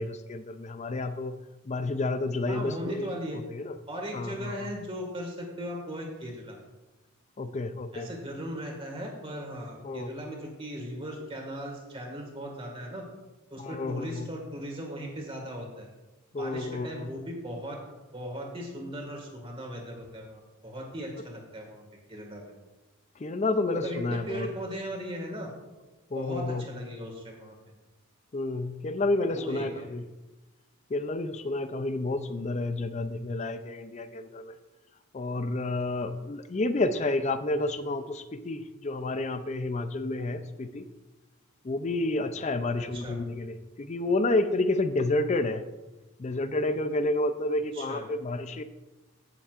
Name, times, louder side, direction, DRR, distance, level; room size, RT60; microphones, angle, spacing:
voice 1, 0.0-1.3 1.6-3.7 4.1-4.7 7.4-8.1 9.8-10.1 13.6-14.3 16.3-17.1 23.2-24.5 26.1-26.7 28.3-30.0 30.9-34.6 35.1-40.9 41.6-45.6 46.2-48.6, left 2 dB, 30° left, 11 dB, 0.4 m, -30 dB
voice 2, 2.5-3.4 3.9-6.6 7.9-13.0 13.5-15.9 16.3-17.8 18.1-21.8 22.1-22.5 23.7-25.5 26.2-27.6 29.3-29.9 42.8-43.2 47.7-48.1, equal, 25° right, 1 dB, 1.8 m, -38 dB
15.5 x 7.1 x 2.5 m, 1.1 s
head